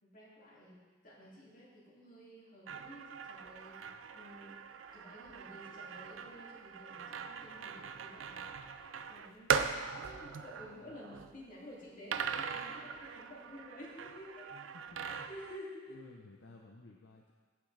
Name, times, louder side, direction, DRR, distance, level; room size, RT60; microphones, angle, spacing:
voice 1, 0.0-3.8 4.1-4.6 4.9-8.5 9.1-14.5 15.0-16.0, equal, 45° left, -6 dB, 2.4 m, -52 dB
sound 1, 2.7-11.4 12.1-15.6, right 6 dB, 90° right, 0.4 m, -40 dB
voice 2, 14.5-15.3 15.9-17.3, left 3 dB, 65° left, 0 dB, 0.6 m, -56 dB
14.5 x 5.9 x 3.3 m, 1.4 s
head